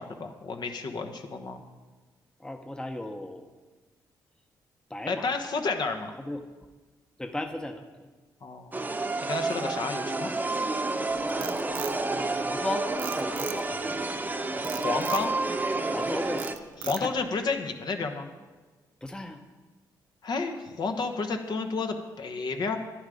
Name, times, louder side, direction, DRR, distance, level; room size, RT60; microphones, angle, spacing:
voice 1, 0.0-1.6 5.1-6.2 8.4-8.8 9.2-10.3 14.7-15.3 16.8-18.3 20.2-22.8, left 4 dB, 55° left, 5 dB, 1.2 m, -31 dB
voice 2, 2.4-3.5 4.9-5.3 6.2-6.4 7.2-8.1 11.3-14.2 14.5-15.0 15.9-16.4 16.8-17.2 19.0-19.4, left 1 dB, 10° left, 6 dB, 0.9 m, -37 dB
sound 1, 8.7-16.5, right 2 dB, 20° right, 0.9 m, -30 dB
Frog, 11.1-12.6 13.0-13.9 14.6-15.3 15.8-16.0 16.4-17.3, right 10 dB, 80° right, 0.6 m, -39 dB
10.5 x 10.0 x 5.0 m, 1.3 s
cardioid pair, 70°, 8 cm